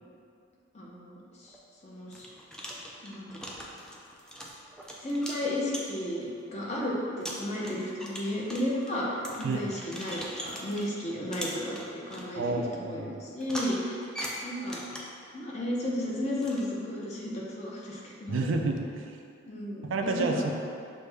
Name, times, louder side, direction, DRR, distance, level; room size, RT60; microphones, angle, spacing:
voice 1, 0.7-1.6 1.8-2.3 3.0-3.3 5.0-14.1 14.4-14.8 15.3-18.5 19.5-20.4, left 1 dB, 35° left, -4 dB, 0.7 m, -33 dB
sound 1, 1.4-1.6 2.1-6.2 6.7-6.8 7.2-10.9 11.3-12.3 13.4-15.2 16.4-16.6, equal, 5° left, 0.3 m, -41 dB
voice 2, 12.4-13.1 18.3-19.1 19.8-20.5, right 3 dB, 75° right, 3 dB, 0.4 m, -29 dB
6.2 x 2.1 x 3.4 m, 2.4 s
head